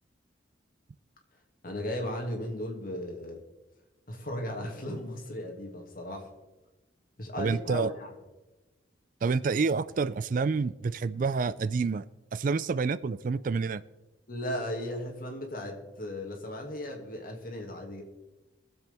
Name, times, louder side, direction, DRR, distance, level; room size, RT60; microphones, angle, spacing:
voice 1, 1.6-3.4 4.1-6.3 7.2-8.1 14.3-18.0, left 1 dB, 50° left, 1 dB, 2.3 m, -36 dB
voice 2, 7.4-7.9 9.2-12.0 12.3-13.8, right 4 dB, 45° right, 16 dB, 0.3 m, -28 dB
22.5 x 7.7 x 3.5 m, 1.1 s
head